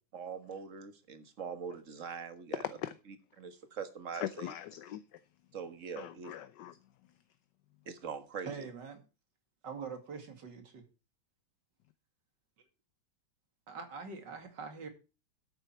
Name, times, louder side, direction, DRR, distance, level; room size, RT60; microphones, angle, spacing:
voice 1, 0.1-2.7 3.4-4.5 5.5-6.3 7.9-8.5, right 6 dB, 40° right, 1.7 m, -42 dB
voice 2, 2.6-2.9 4.1-5.2 6.0-6.8, left 11 dB, 70° left, 1.2 m, -41 dB
voice 3, 8.4-9.0 9.6-10.8 13.7-14.9, right 5 dB, 60° right, 2.8 m, -44 dB
11.5 x 9.2 x 4.4 m
omnidirectional pair, 2.2 m